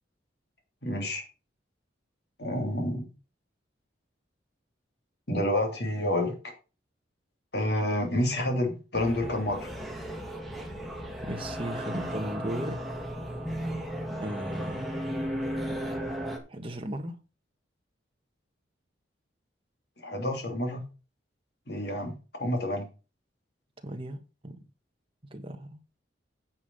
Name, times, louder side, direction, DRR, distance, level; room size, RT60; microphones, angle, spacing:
voice 1, 0.8-1.2 2.4-3.1 5.3-6.4 7.5-9.7 20.0-20.9 21.7-22.9, left 1 dB, 60° left, 3.0 m, -29 dB
sound 1, 8.9-16.4, equal, ahead, 2.0 m, -35 dB
voice 2, 11.2-12.8 14.2-14.9 16.5-17.2 23.8-24.6 25.3-25.8, right 1 dB, 30° right, 1.4 m, -36 dB
9.7 x 5.6 x 5.5 m
head